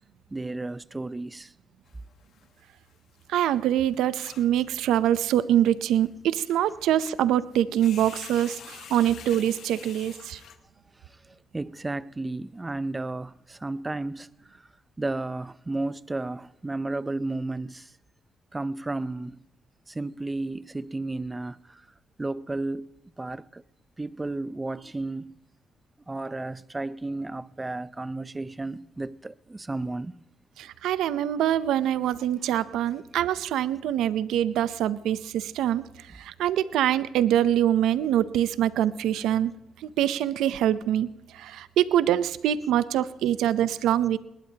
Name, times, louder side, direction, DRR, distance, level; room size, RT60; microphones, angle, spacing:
voice 1, 0.3-1.5 11.3-14.3 15.0-17.9 18.5-19.4 19.9-21.8 22.2-22.9 23.2-23.6 24.0-25.3 26.1-30.2 32.2-32.3, right 2 dB, 20° right, 0.5 m, -33 dB
sound 1, 1.9-2.6 2.9-3.0 3.2-3.3 3.5-3.6 3.9-4.6 5.3-5.4 6.0-6.1 6.5-7.2 7.4-10.6, left 9 dB, 70° left, 1.4 m, -46 dB
voice 2, 3.3-10.4 30.6-35.9 36.1-39.5 39.8-41.1 41.3-44.2, right 11 dB, 85° right, 0.6 m, -24 dB
21.5 x 19.5 x 2.9 m
cardioid pair, 90°, 0 cm